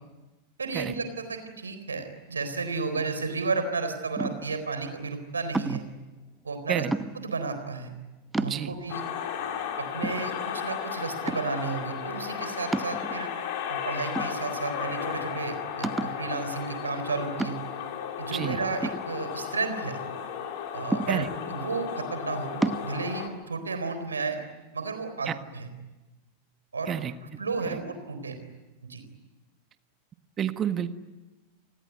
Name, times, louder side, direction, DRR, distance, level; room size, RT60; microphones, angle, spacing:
voice 1, 0.6-5.9 6.4-6.8 7.1-7.9 8.4-9.0 9.8-13.3 13.7-17.6 18.2-20.0 20.7-24.4 24.7-25.7 26.7-26.9 27.4-28.4 28.9-29.0, right 4 dB, 75° right, 9 dB, 4.0 m, -32 dB
sound 1, 4.2-4.6 5.5-6.0 6.9-7.4 7.9-8.0 8.3-9.0 9.5-9.6 10.0-10.8 11.3-11.7 12.7-13.5 14.2-14.8 15.1-15.2 15.8-16.3 17.4-17.9 18.8-19.7 20.9-21.5 22.6-22.9, right 3 dB, 10° right, 1.0 m, -31 dB
sound 2, 8.9-23.3, left 8 dB, 50° left, 4.2 m, -34 dB
voice 2, 30.4-30.9, right 9 dB, 25° right, 11 dB, 1.5 m, -29 dB
29.5 x 20.0 x 9.5 m, 1.1 s
figure-of-eight pair, 90°, 0 cm